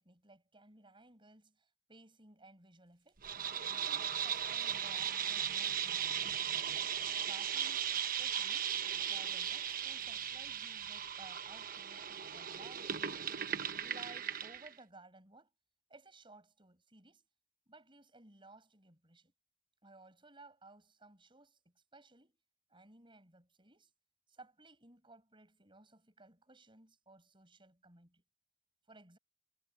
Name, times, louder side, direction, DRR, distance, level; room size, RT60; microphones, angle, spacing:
voice 1, 0.0-3.3 3.7-6.4 7.2-8.7 9.1-13.3 13.8-15.5 15.9-17.3 17.7-19.3 19.8-22.4 22.7-23.9 24.3-28.2 28.9-29.2, right 2 dB, 30° right, 6.7 m, -59 dB
sound 1, 3.2-14.7, right 8 dB, 50° right, 1.1 m, -37 dB
head